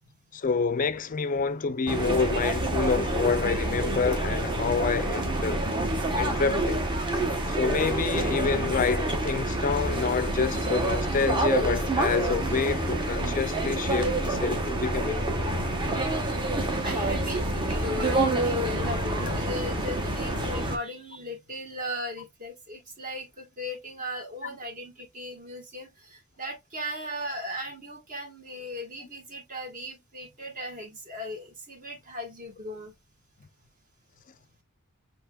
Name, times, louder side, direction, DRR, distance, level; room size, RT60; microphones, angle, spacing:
voice 1, 0.3-5.6 6.2-6.8 7.5-15.2, left 5 dB, 40° left, 0.4 m, -28 dB
sound 1, 1.9-20.8, right 1 dB, 20° right, 1.1 m, -27 dB
voice 2, 13.8-15.0 16.6-32.9, equal, 40° right, 1.9 m, -38 dB
7.0 x 2.9 x 2.4 m
head